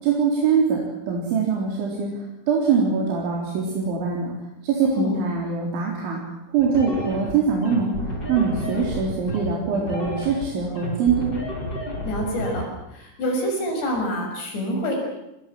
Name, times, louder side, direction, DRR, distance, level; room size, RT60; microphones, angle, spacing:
voice 1, 0.0-0.8 1.1-4.3 4.6-6.2 6.5-7.9 8.3-11.3, right 5 dB, 80° right, -2 dB, 6.2 m, -23 dB
voice 2, 4.8-5.2 12.0-12.6 12.9-15.0, equal, 65° left, 2 dB, 8.4 m, -26 dB
sound 1, 6.6-12.6, equal, 20° left, 6.8 m, -31 dB
26.5 x 22.5 x 7.7 m, 0.91 s
omnidirectional pair, 5.3 m